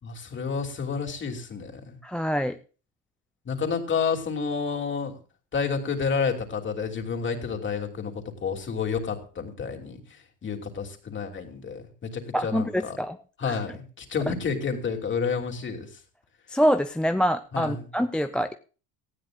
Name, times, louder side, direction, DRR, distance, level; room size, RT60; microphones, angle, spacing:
voice 1, 0.0-2.0 3.4-5.1 5.5-8.1 8.4-13.0 13.4-16.0 17.5-17.9, left 5 dB, 30° left, 3 dB, 3.0 m, -30 dB
voice 2, 2.0-2.6 12.3-13.2 13.5-13.6 16.5-18.5, equal, 5° left, 8 dB, 0.5 m, -25 dB
18.5 x 13.0 x 2.5 m, 0.36 s
supercardioid pair, 100°, 36 cm